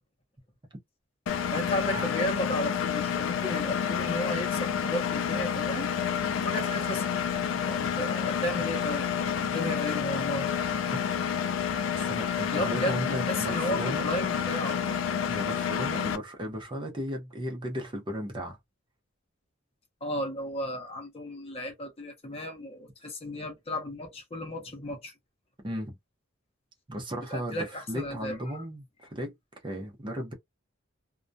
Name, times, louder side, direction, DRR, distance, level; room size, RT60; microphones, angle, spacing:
Engine, 1.3-16.2, left 7 dB, 70° left, 0.4 m, -29 dB
voice 1, 1.5-5.9 6.4-7.0 7.7-9.1 9.5-10.5 12.5-14.8 20.0-25.1 27.3-28.6, equal, 30° left, 0.7 m, -34 dB
voice 2, 12.0-14.1 15.3-18.6 25.6-26.0 26.9-28.8 29.1-29.3 29.6-30.3, equal, 25° right, 0.7 m, -35 dB
2.2 x 2.1 x 2.6 m
head